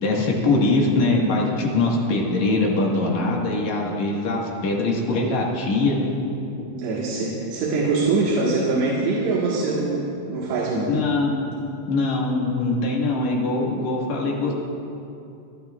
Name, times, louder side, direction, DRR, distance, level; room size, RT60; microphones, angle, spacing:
voice 1, 0.0-6.1 10.9-11.5 11.9-14.5, left 2 dB, 55° left, -2 dB, 2.3 m, -22 dB
voice 2, 6.7-10.9, right 3 dB, 80° right, -5 dB, 3.6 m, -23 dB
26.5 x 12.0 x 2.4 m, 2.7 s
omnidirectional pair, 4.9 m